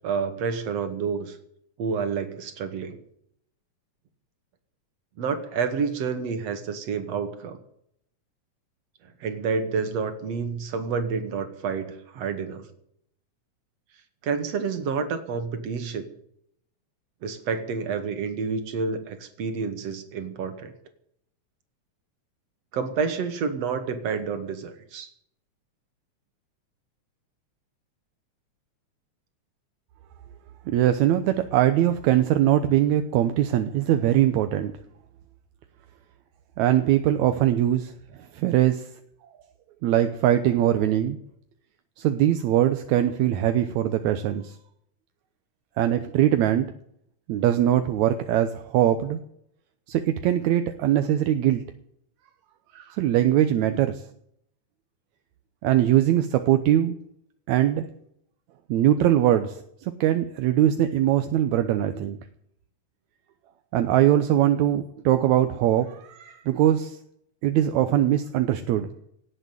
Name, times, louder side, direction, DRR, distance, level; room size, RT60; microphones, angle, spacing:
voice 1, 0.0-1.4 1.8-3.0 5.2-7.6 9.2-12.6 14.2-16.1 17.2-20.7 22.7-25.1, right 5 dB, 60° right, 8 dB, 2.9 m, -29 dB
voice 2, 30.7-34.7 36.6-37.9 38.3-38.9 39.8-41.2 42.0-44.5 45.8-46.7 47.3-49.2 49.9-51.6 52.7-54.0 55.6-57.0 57.5-57.9 58.7-62.2 63.7-67.0 67.4-68.9, right 12 dB, 80° right, 8 dB, 2.2 m, -22 dB
17.5 x 7.9 x 9.3 m, 0.70 s
omnidirectional pair, 3.4 m